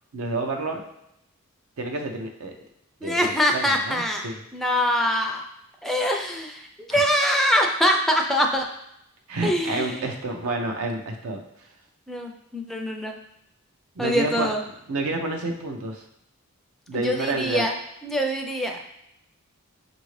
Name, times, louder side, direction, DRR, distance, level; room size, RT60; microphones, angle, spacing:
voice 1, 0.1-0.8 1.8-2.5 3.0-4.4 6.9-7.1 9.3-11.4 14.0-14.5 14.9-16.0 16.9-17.7, right 2 dB, 80° right, 2 dB, 0.6 m, -29 dB
voice 2, 3.0-4.3 4.5-5.4 5.8-8.7 9.4-10.1 12.1-13.2 14.0-14.6 16.9-17.7 18.0-18.8, equal, ahead, 2 dB, 0.3 m, -24 dB
5.6 x 2.6 x 3.1 m, 0.81 s
head